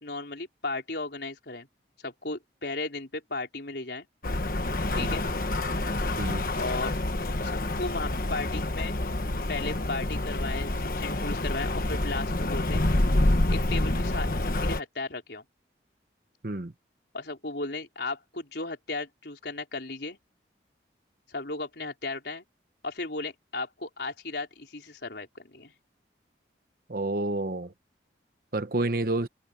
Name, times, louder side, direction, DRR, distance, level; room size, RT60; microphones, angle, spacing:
voice 1, 0.0-1.7 2.0-4.1 4.9-5.3 6.5-7.0 7.4-8.9 9.5-12.8 13.5-15.4 17.1-20.2 21.3-22.4 22.8-25.7, left 3 dB, 65° left, 4.1 m, -35 dB
Rain, 4.2-14.8, left 1 dB, 50° left, 1.3 m, -27 dB
voice 2, 26.9-27.7 28.5-29.3, right 2 dB, 50° right, 1.0 m, -29 dB
head